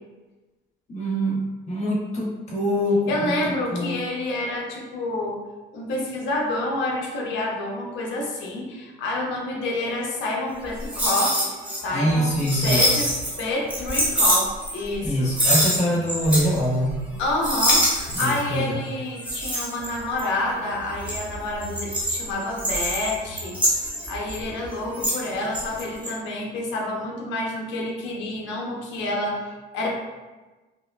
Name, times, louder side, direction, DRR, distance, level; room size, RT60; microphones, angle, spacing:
voice 1, 0.9-4.0 11.9-13.0 15.0-16.9 18.1-18.8, equal, 35° left, -5 dB, 1.1 m, -24 dB
voice 2, 3.1-5.4 5.7-13.1 13.4-15.3 17.2-23.6 23.9-29.9, left 1 dB, 70° left, -2 dB, 0.9 m, -28 dB
sound 1, 10.7-11.8 12.1-13.4 13.7-15.1 15.3-16.6 16.9-17.1 17.4-18.5 19.2-20.4 20.8-25.3 25.5-26.1, equal, 5° right, 1.0 m, -24 dB
4.9 x 2.2 x 2.3 m, 1.2 s
cardioid pair, 125°, 20 cm